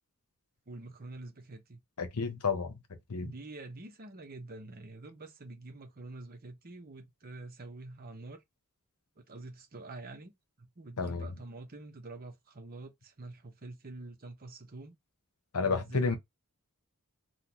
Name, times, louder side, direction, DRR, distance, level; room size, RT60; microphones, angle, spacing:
voice 1, 0.7-1.8 3.2-8.4 9.2-10.3 10.6-15.0 15.6-16.2, right 2 dB, 40° right, 0.9 m, -46 dB
voice 2, 2.0-2.8 3.1-3.3 11.0-11.3 15.5-16.2, left 4 dB, 85° left, 0.8 m, -30 dB
3.8 x 2.4 x 2.9 m
head